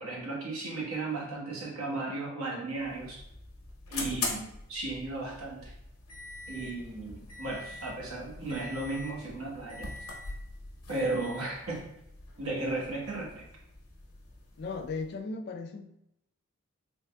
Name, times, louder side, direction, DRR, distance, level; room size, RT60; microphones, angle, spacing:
voice 1, 0.0-3.2 3.9-5.7 6.5-9.9 10.9-11.8 12.4-13.4, right 2 dB, 75° right, -3 dB, 1.1 m, -35 dB
sound 1, 2.7-15.2, left 3 dB, 70° left, 0.8 m, -43 dB
voice 2, 14.6-15.9, left 4 dB, 50° left, 7 dB, 0.3 m, -36 dB
3.5 x 3.3 x 2.2 m, 0.80 s
head